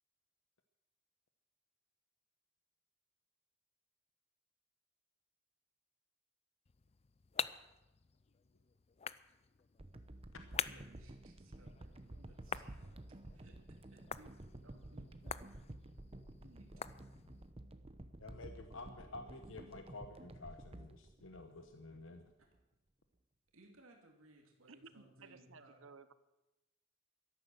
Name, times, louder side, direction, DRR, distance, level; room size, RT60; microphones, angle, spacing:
sound 1, 6.6-17.5, left 7 dB, 30° left, 0.4 m, -47 dB
sound 2, 9.8-22.0 22.5-22.6, right 1 dB, 30° right, 0.9 m, -52 dB
voice 1, 10.5-15.5 16.4-16.7 23.5-25.8, right 1 dB, 90° right, 2 dB, 2.6 m, -63 dB
voice 2, 18.2-22.3, left 2 dB, 65° left, 7 dB, 1.1 m, -51 dB
voice 3, 24.7-26.1, right 4 dB, 75° right, 13 dB, 1.0 m, -57 dB
13.5 x 11.5 x 7.9 m, 0.97 s
head